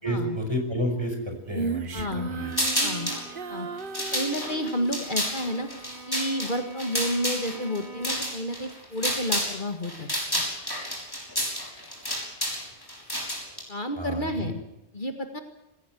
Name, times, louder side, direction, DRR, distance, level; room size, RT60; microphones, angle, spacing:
voice 1, 0.0-2.5 14.0-14.5, equal, 25° right, 4 dB, 5.7 m, -30 dB
Female singing, 1.5-5.0, right 5 dB, 55° right, 1.1 m, -35 dB
voice 2, 1.9-2.3 2.8-3.1 3.5-3.7 4.1-5.7 6.1-10.1 10.3-10.4 13.7-14.6 14.9-15.4, equal, 45° left, 6 dB, 2.0 m, -30 dB
Bowed string instrument, 2.2-8.4, right 4 dB, 90° right, 6.5 m, -46 dB
sound 1, 2.5-3.2 3.8-9.6 9.8-13.6, equal, 20° left, 6.3 m, -30 dB
20.0 x 17.0 x 9.1 m, 0.91 s
omnidirectional pair, 1.1 m